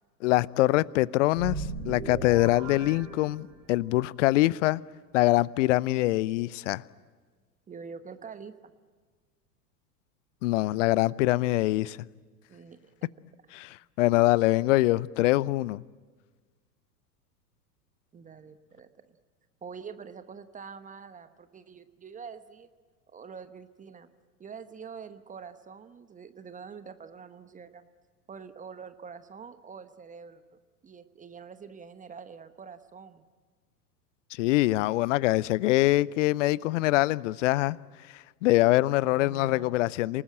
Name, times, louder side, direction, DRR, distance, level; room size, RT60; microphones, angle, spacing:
voice 1, 0.2-4.8 5.1-6.8 10.4-12.0 13.5-15.8 34.3-37.8 38.4-40.2, left 18 dB, 50° left, 0.7 m, -24 dB
sound 1, 1.3-3.9, right 4 dB, 60° right, 4.5 m, -37 dB
voice 2, 7.7-8.5 12.5-12.9 18.1-19.2 19.6-22.7 23.1-24.1 24.4-27.9 28.3-30.4 30.8-33.2 38.8-39.8, right 6 dB, 15° right, 1.0 m, -45 dB
27.5 x 19.0 x 8.8 m
figure-of-eight pair, 90°, 49 cm